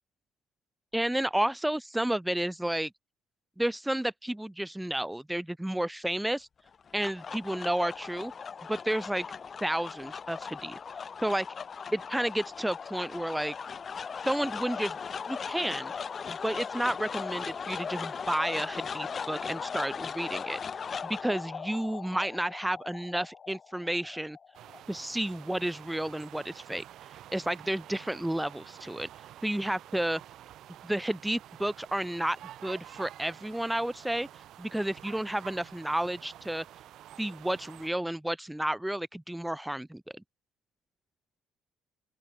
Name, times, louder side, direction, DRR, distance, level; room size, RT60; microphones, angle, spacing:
voice 1, 0.9-2.9 3.6-6.5 6.9-8.3 8.7-9.3 9.6-10.8 11.2-11.5 11.9-13.5 14.3-15.0 15.3-15.9 16.3-20.6 21.0-24.4 24.9-26.8 27.3-29.1 29.4-30.2 30.8-32.4 32.6-34.3 34.6-36.7 37.2-40.2, right 1 dB, 5° right, 0.3 m, -31 dB
sound 1, 6.7-25.0, left 6 dB, 40° left, 0.6 m, -38 dB
sound 2, 24.5-37.9, right 12 dB, 65° right, 1.1 m, -49 dB
open air
supercardioid pair, 75°, 0 cm